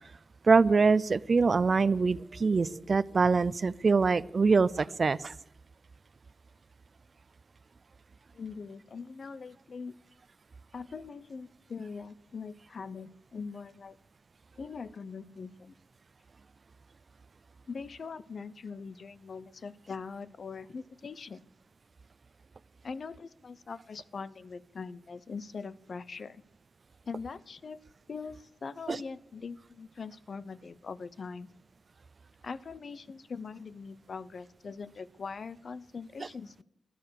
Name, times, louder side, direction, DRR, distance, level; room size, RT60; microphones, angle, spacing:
voice 1, 0.4-5.3 28.9-29.0, right 4 dB, 50° right, 19 dB, 0.5 m, -24 dB
voice 2, 8.3-10.0 10.7-14.0 14.6-15.7 17.7-21.5 22.8-26.4 27.1-27.8 28.1-31.5 32.4-36.6, left 5 dB, 60° left, 16 dB, 0.6 m, -42 dB
15.0 x 11.0 x 6.7 m, 0.80 s
cardioid pair, 80°, 0 cm